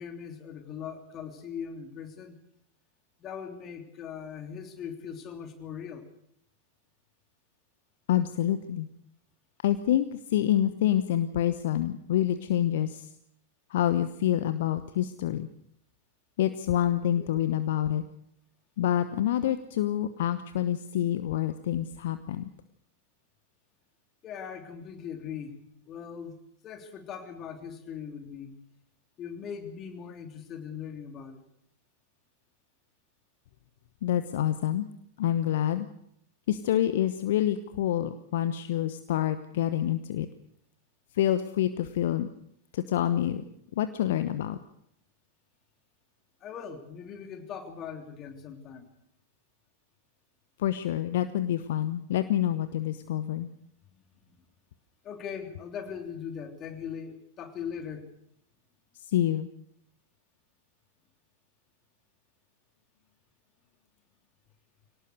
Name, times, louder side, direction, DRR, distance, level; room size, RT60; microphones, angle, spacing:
voice 1, 0.0-2.4 3.2-6.1 17.2-17.3 24.2-25.6 25.9-26.4 26.6-28.6 29.2-31.4 46.4-48.9 53.2-53.4 54.0-54.4 55.0-58.1, left 7 dB, 30° left, 6 dB, 3.3 m, -40 dB
voice 2, 8.1-8.9 9.6-13.1 13.7-15.5 16.4-18.0 18.8-22.5 34.0-34.9 35.2-35.9 36.5-40.3 41.1-42.3 42.7-43.4 43.7-44.6 50.6-53.5 58.9-59.5, left 11 dB, 55° left, 11 dB, 1.0 m, -27 dB
24.5 x 18.0 x 6.7 m, 0.73 s
figure-of-eight pair, 95°, 0 cm